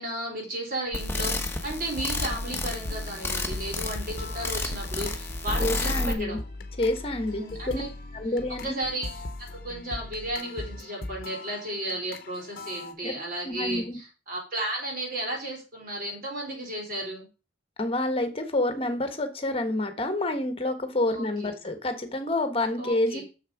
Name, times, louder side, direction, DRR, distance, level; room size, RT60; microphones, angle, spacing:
voice 1, 0.0-1.4 1.6-6.4 7.3-7.9 8.6-9.2 9.5-17.3 21.1-21.5 22.8-23.2, right 1 dB, 50° right, 0 dB, 4.1 m, -34 dB
sound 1, 0.9-6.1, left 2 dB, 10° left, 1.1 m, -31 dB
sound 2, 2.0-12.9, left 2 dB, 50° left, 1.0 m, -39 dB
voice 2, 5.6-6.4 6.8-7.8 8.1-8.7 13.0-13.1 13.4-14.0 17.8-23.2, left 1 dB, 30° left, 8 dB, 1.3 m, -28 dB
6.9 x 6.5 x 5.0 m, 0.32 s
head